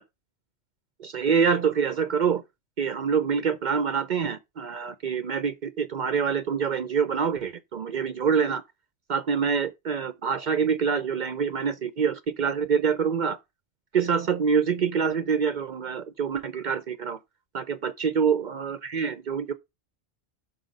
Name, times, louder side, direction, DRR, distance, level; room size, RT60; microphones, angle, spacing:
voice 1, 1.0-2.4 2.8-8.6 9.1-13.4 13.9-17.2 17.5-19.5, right 6 dB, 55° right, 0.6 m, -26 dB
5.6 x 5.5 x 5.0 m
omnidirectional pair, 1.1 m